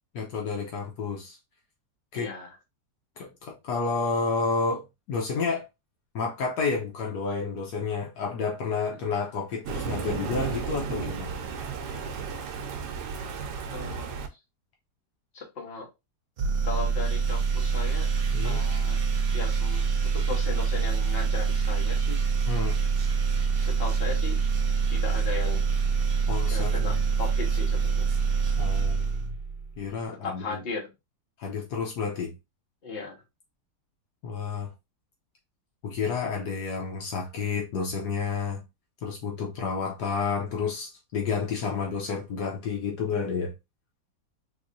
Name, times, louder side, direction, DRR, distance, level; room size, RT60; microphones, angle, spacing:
voice 1, 0.1-1.4 2.1-2.3 3.2-5.6 6.1-11.4 18.3-18.6 22.5-22.8 26.3-26.9 28.6-29.3 29.8-30.6 31.4-32.3 34.2-34.7 35.8-38.6 39.0-43.5, left 5 dB, 70° left, 1.3 m, -30 dB
voice 2, 2.1-2.5 9.0-9.1 13.7-14.1 15.3-15.8 16.6-18.1 18.3-19.0 19.3-19.9 20.1-22.2 23.6-24.3 24.9-25.6 26.5-28.0 30.2-30.8 32.8-33.1, left 4 dB, 35° left, 1.3 m, -36 dB
Thunder, 9.6-14.3, right 6 dB, 80° right, 1.2 m, -34 dB
sound 1, 16.4-29.8, right 5 dB, 60° right, 0.6 m, -25 dB
3.6 x 3.1 x 2.5 m
omnidirectional pair, 1.8 m